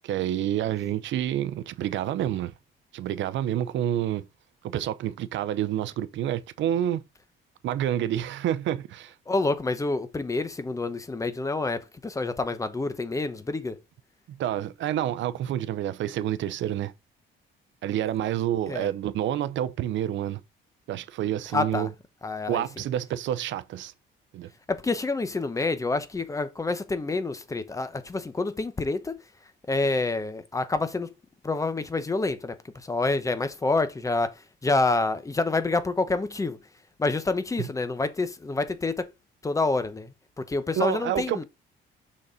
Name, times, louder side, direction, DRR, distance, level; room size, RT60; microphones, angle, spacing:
voice 1, 0.0-2.5 2.9-4.3 4.6-7.0 7.6-9.1 14.3-16.9 17.8-20.4 20.9-21.9 22.5-23.9 24.3-24.5 37.6-37.7 40.8-41.4, right 11 dB, 70° right, 0.8 m, -28 dB
voice 2, 9.3-13.8 18.7-18.9 21.5-21.9 22.2-22.6 24.7-29.2 29.7-31.1 31.4-36.6 37.0-39.1 39.4-40.1 40.4-41.4, left 3 dB, 15° left, 0.9 m, -27 dB
6.6 x 4.3 x 5.1 m
cardioid pair, 150°, 20 cm